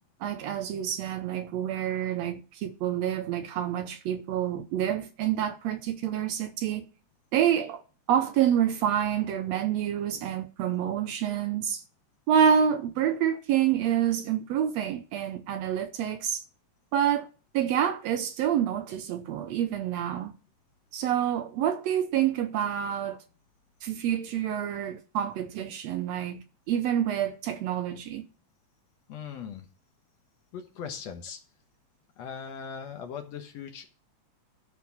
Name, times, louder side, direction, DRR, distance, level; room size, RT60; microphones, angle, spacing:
voice 1, 0.2-6.9 7.3-7.8 8.1-11.8 12.3-16.4 16.9-17.3 17.5-20.3 20.9-23.2 23.8-28.2, right 9 dB, 75° right, 1.7 m, -27 dB
voice 2, 29.1-29.7 30.5-31.4 32.2-33.9, left 7 dB, 65° left, 2.3 m, -39 dB
12.0 x 4.5 x 7.1 m
omnidirectional pair, 3.4 m